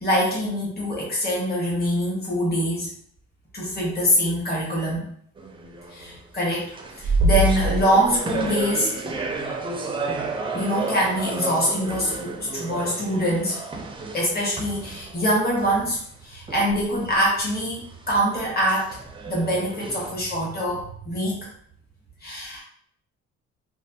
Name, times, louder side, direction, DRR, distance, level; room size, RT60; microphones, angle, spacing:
voice 1, 0.0-2.9 3.5-5.1 5.9-6.7 7.0-8.9 10.5-13.6 14.1-19.0 19.3-21.5 22.2-22.6, equal, 30° left, -4 dB, 1.4 m, -24 dB
sound 1, 5.4-6.2 6.6-15.3 15.6-15.9 16.5-17.3 17.7-20.1, right 2 dB, 15° right, 0.4 m, -29 dB
3.1 x 2.4 x 2.7 m, 0.63 s
cardioid pair, 90°, 30 cm